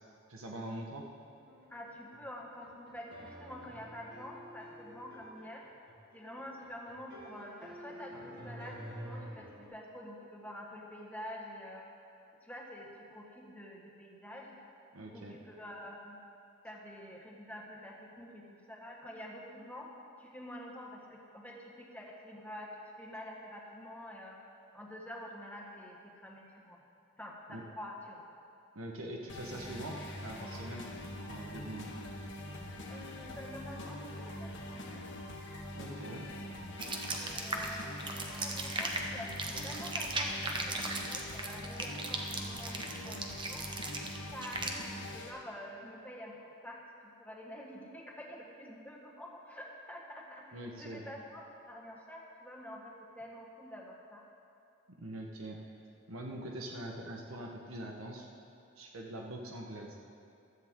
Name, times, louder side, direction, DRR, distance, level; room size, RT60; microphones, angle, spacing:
voice 1, 0.3-1.0 14.9-15.4 27.5-27.6 28.7-30.0 30.2-30.8 31.3-31.9 35.7-36.3 50.5-51.0 55.0-55.6 56.1-58.3 58.8-60.0, right 1 dB, 85° right, 0 dB, 1.3 m, -43 dB
sound 1, 1.5-9.7, equal, 50° right, 2.0 m, -49 dB
voice 2, 1.7-5.6 6.1-11.9 12.4-14.6 15.1-16.2 16.6-19.9 20.2-22.7 23.0-24.4 24.7-26.8 27.2-28.3 32.9-35.0 37.2-43.7 44.3-54.2, left 1 dB, 5° left, -2 dB, 1.6 m, -47 dB
sound 2, 29.3-45.3, left 1 dB, 60° left, 1.5 m, -44 dB
sound 3, 36.8-44.7, right 3 dB, 25° right, 1.0 m, -37 dB
16.0 x 13.0 x 3.8 m, 2.7 s
head